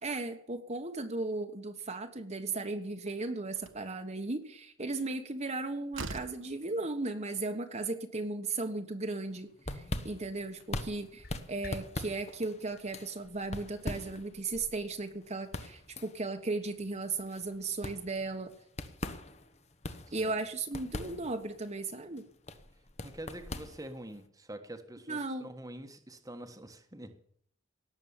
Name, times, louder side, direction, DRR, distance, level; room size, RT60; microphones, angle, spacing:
voice 1, 0.0-18.5 20.1-22.2 25.1-25.5, right 3 dB, 35° right, 5 dB, 1.4 m, -36 dB
Slam, 2.9-3.0 3.6-3.9 5.4-5.5 5.9-6.5, right 3 dB, 70° right, 1.5 m, -41 dB
sound 1, 9.3-24.2, left 1 dB, 35° left, 1.3 m, -43 dB
sound 2, 9.6-12.0, left 1 dB, 55° left, 7.0 m, -51 dB
voice 2, 23.0-27.1, right 1 dB, 20° right, 6 dB, 1.5 m, -46 dB
18.5 x 7.4 x 8.8 m, 0.66 s
head